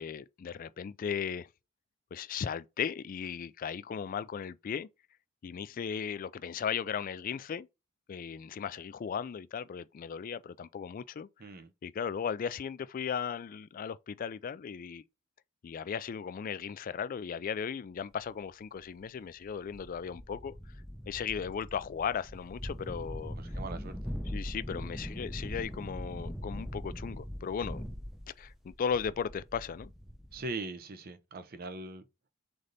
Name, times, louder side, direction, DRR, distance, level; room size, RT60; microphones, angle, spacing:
voice 1, 0.0-1.5 2.1-4.9 5.4-7.7 8.1-11.3 11.8-15.0 15.6-20.6 21.1-23.4 24.3-27.8 28.4-29.9, left 7 dB, 40° left, 0.3 m, -36 dB
voice 2, 11.4-11.7 23.4-24.0 30.3-32.0, right 3 dB, 45° right, 0.7 m, -40 dB
sound 1, 18.2-18.3 19.0-19.1 19.5-30.5, equal, ahead, 0.6 m, -41 dB
3.9 x 3.3 x 4.0 m
head